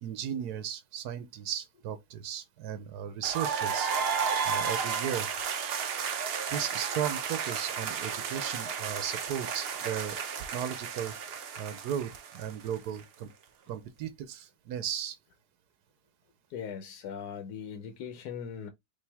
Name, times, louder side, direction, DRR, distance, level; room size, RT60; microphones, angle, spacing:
voice 1, 0.0-3.9 4.4-5.3 6.5-10.2 10.5-11.1 11.6-13.3 13.7-15.2, right 9 dB, 85° right, 1.2 m, -36 dB
sound 1, 3.2-13.0, right 6 dB, 55° right, 0.7 m, -33 dB
voice 2, 16.5-18.7, left 7 dB, 80° left, 1.3 m, -39 dB
5.4 x 2.7 x 3.4 m
omnidirectional pair, 1.7 m